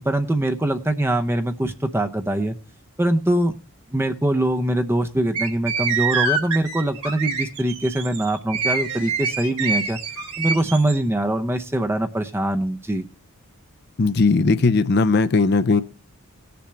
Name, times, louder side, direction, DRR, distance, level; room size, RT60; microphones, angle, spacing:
voice 1, 0.0-2.6 3.0-3.5 3.9-10.0 10.4-13.1, right 1 dB, 10° right, 7 dB, 0.6 m, -23 dB
sound 1, 5.3-11.0, right 4 dB, 90° right, 3.4 m, -26 dB
voice 2, 14.0-15.8, left 3 dB, 50° left, 12 dB, 0.5 m, -18 dB
19.0 x 6.8 x 3.2 m, 0.35 s
head